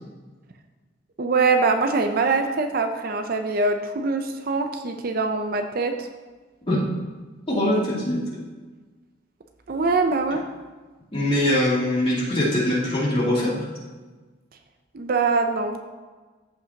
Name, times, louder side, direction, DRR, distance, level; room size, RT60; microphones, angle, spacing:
voice 1, 1.2-6.1 9.7-10.4 14.9-15.8, right 4 dB, 50° right, 6 dB, 0.5 m, -23 dB
voice 2, 7.5-8.2 11.1-13.7, left 1 dB, 30° left, -7 dB, 2.7 m, -22 dB
14.5 x 5.4 x 2.8 m, 1.3 s
head